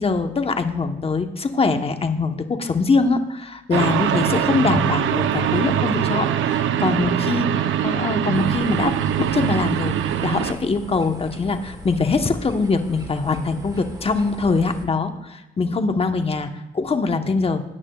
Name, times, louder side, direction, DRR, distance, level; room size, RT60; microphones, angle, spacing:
voice 1, 0.0-17.6, left 4 dB, 30° left, 7 dB, 1.0 m, -23 dB
sound 1, 3.7-10.5, right 10 dB, 75° right, 0.7 m, -22 dB
sound 2, 8.3-14.9, right 1 dB, 20° right, 1.3 m, -39 dB
20.5 x 9.7 x 2.3 m, 1.0 s
cardioid pair, 90°, 20 cm